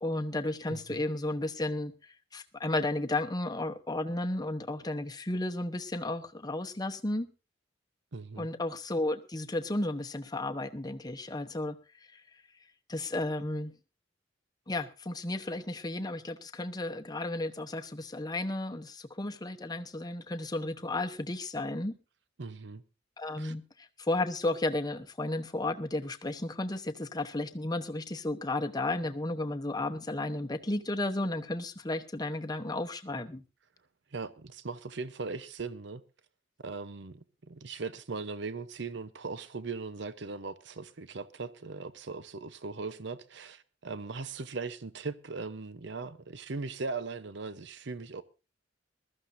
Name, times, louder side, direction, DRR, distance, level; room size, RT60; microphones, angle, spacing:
voice 1, 0.0-1.9 2.3-7.3 8.4-11.8 12.1-12.2 12.9-13.7 14.7-22.0 23.2-33.4, left 2 dB, 20° left, 0.9 m, -33 dB
voice 2, 0.7-1.0 8.1-8.5 22.4-22.8 23.4-23.5 34.1-36.0 36.6-37.2 37.5-48.2, right 4 dB, 65° right, 0.8 m, -39 dB
21.5 x 13.5 x 2.6 m
head